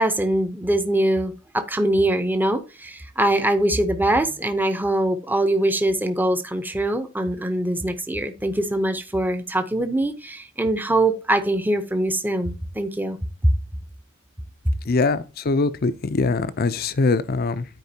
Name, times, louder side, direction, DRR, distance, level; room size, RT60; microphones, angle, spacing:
voice 1, 0.0-13.2 13.4-13.5, right 1 dB, 10° right, 0.8 m, -23 dB
voice 2, 14.9-17.6, left 3 dB, 45° left, 0.6 m, -22 dB
13.0 x 4.7 x 2.8 m
head